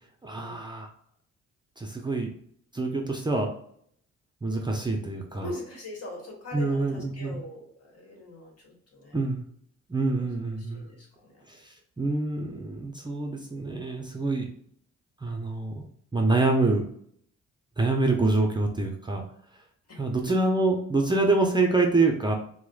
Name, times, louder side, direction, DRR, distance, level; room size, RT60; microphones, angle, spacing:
voice 1, 0.2-0.9 1.8-2.3 2.7-3.5 4.4-5.5 6.5-7.4 9.1-9.4 9.9-10.9 11.5-14.5 15.2-15.8 16.1-16.8 17.8-19.2 20.0-22.3, right 2 dB, 15° right, 1 dB, 0.5 m, -26 dB
voice 2, 5.3-9.2 10.1-10.4 10.7-11.4 19.9-20.0, left 1 dB, 55° left, 0 dB, 1.4 m, -42 dB
4.6 x 2.1 x 2.3 m, 0.64 s
cardioid pair, 90°, 30 cm